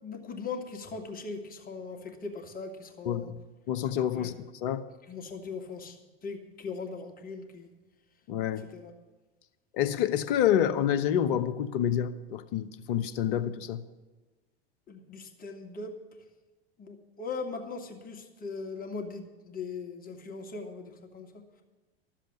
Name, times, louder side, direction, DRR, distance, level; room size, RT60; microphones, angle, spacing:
voice 1, 0.0-3.3 4.1-4.4 5.1-6.0 6.2-7.7 8.6-8.9 14.9-16.0 16.8-21.4, left 4 dB, 30° left, 2.1 m, -39 dB
voice 2, 3.0-3.4 3.7-4.3 4.6-4.8 8.3-8.7 9.7-13.8, left 10 dB, 55° left, 1.0 m, -28 dB
13.0 x 7.5 x 9.8 m
hypercardioid pair, 90°, 31 cm